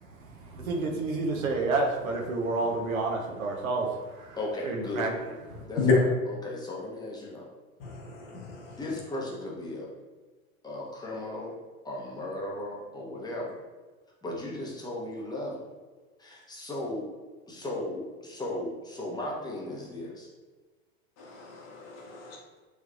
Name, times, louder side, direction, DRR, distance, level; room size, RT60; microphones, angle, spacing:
voice 1, 0.0-4.4 4.6-5.7, right 3 dB, 80° right, 1 dB, 0.8 m, -30 dB
voice 2, 4.4-5.1 5.7-5.8 6.3-7.5 8.8-9.9 10.6-11.6 11.8-13.6 14.2-15.7 16.2-17.1 17.5-20.3, left 1 dB, 10° left, -3 dB, 0.8 m, -36 dB
voice 3, 7.8-9.0 21.2-22.6, left 4 dB, 40° left, -2 dB, 1.0 m, -32 dB
3.2 x 3.2 x 2.4 m, 1.3 s
hypercardioid pair, 90°, 41 cm